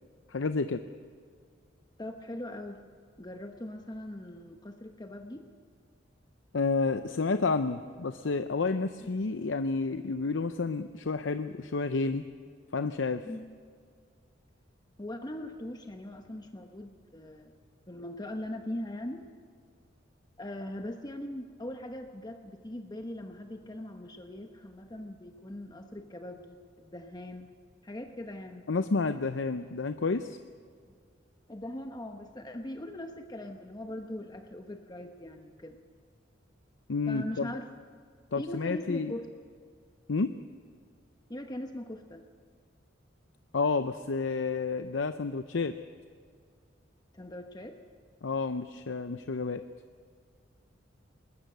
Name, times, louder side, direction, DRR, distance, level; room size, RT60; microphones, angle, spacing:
voice 1, 0.3-0.8 6.5-12.2 12.7-13.2 28.7-30.4 36.9-37.5 38.3-39.1 40.1-40.3 43.5-45.7 48.2-49.6, left 4 dB, 75° left, 10 dB, 0.7 m, -30 dB
voice 2, 2.0-2.8 3.2-5.5 9.0-9.1 13.2-13.4 15.0-17.5 17.9-19.2 20.4-27.5 27.8-28.7 31.5-35.8 37.1-37.7 38.4-39.3 41.3-42.2 47.1-47.8, left 1 dB, 20° left, 5 dB, 1.0 m, -40 dB
20.5 x 19.5 x 6.7 m, 2.1 s
head